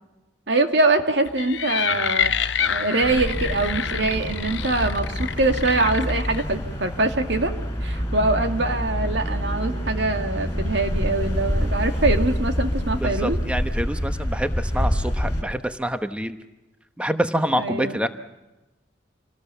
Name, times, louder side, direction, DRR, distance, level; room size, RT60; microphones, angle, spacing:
voice 1, 0.5-7.5 7.8-13.4 17.5-18.0, right 2 dB, 65° right, 6 dB, 2.3 m, -23 dB
sound 1, 1.3-6.4, left 8 dB, 75° left, 0.9 m, -27 dB
sound 2, 3.0-15.4, equal, 15° left, 4.1 m, -27 dB
voice 2, 13.0-16.4 17.0-18.1, equal, 5° right, 9 dB, 1.0 m, -26 dB
27.5 x 19.0 x 7.1 m, 1.0 s
head